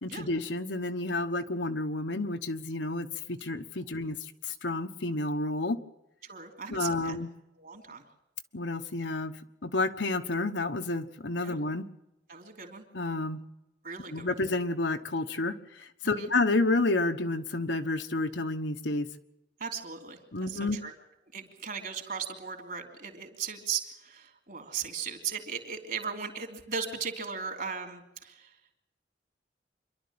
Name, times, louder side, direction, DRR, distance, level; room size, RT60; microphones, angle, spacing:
voice 1, 0.0-4.2 4.5-5.8 6.7-7.3 8.5-9.4 9.6-11.8 12.9-13.4 14.1-19.1 20.3-20.8, left 2 dB, 75° left, 7 dB, 1.3 m, -30 dB
voice 2, 6.3-7.2 7.6-8.0 11.4-11.6 12.3-12.8 13.8-14.4 16.0-16.3 19.6-20.9 21.3-28.5, right 6 dB, 50° right, 5 dB, 3.3 m, -37 dB
26.5 x 12.0 x 8.8 m, 0.91 s
head